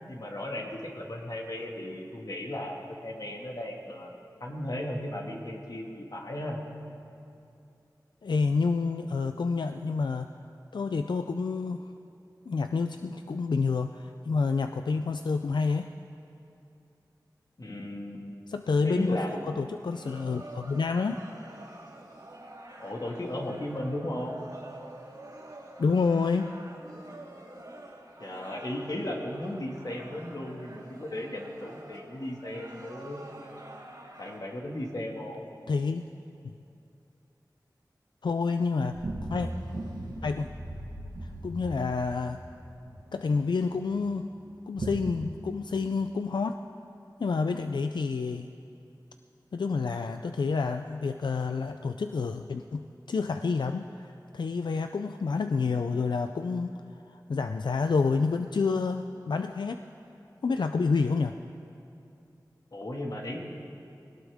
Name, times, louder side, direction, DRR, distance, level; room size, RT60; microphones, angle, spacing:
voice 1, 0.1-4.1 4.4-6.6 17.6-18.4 18.8-19.5 22.8-24.4 28.2-33.3 34.2-35.5 39.3-39.4 62.7-63.4, left 1 dB, 55° left, 0 dB, 2.0 m, -35 dB
voice 2, 8.2-10.3 10.7-11.9 12.5-15.9 18.5-19.2 19.5-21.2 25.8-26.5 35.7-36.0 38.2-39.0 39.3-39.5 40.2-40.5 41.2-42.4 43.1-44.3 44.7-46.6 47.2-48.5 49.5-56.7 57.1-59.8 60.4-61.3, left 4 dB, 90° left, 7 dB, 0.4 m, -28 dB
sound 1, 19.9-34.4, right 1 dB, 60° right, 3.0 m, -47 dB
sound 2, 38.9-44.2 44.6-45.1, right 1 dB, 80° right, 1.6 m, -38 dB
20.5 x 18.5 x 3.6 m, 2.7 s
wide cardioid pair, 70°, 7 cm